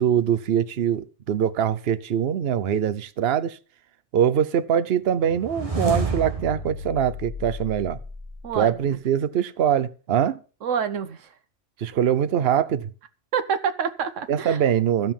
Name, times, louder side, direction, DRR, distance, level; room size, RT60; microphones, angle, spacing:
voice 1, 0.0-3.6 4.1-8.0 8.6-10.4 11.8-12.9 14.3-15.1, right 9 dB, 55° right, 1.0 m, -23 dB
sound 1, 5.2-8.5, right 2 dB, 25° right, 2.0 m, -30 dB
voice 2, 8.4-9.0 10.6-11.3 13.3-14.6, right 7 dB, 90° right, 1.3 m, -27 dB
15.5 x 5.4 x 7.2 m
omnidirectional pair, 1.3 m